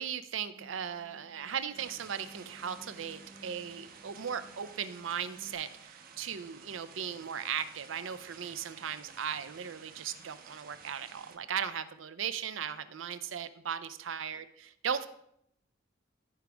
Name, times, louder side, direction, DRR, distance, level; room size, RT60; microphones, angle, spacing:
voice 1, 0.0-15.1, right 8 dB, 85° right, 13 dB, 0.5 m, -37 dB
sound 1, 0.5-5.5, equal, 70° right, 4.1 m, -56 dB
sound 2, 1.7-11.4, right 6 dB, 50° right, 0.7 m, -53 dB
14.5 x 5.0 x 3.5 m, 0.74 s
head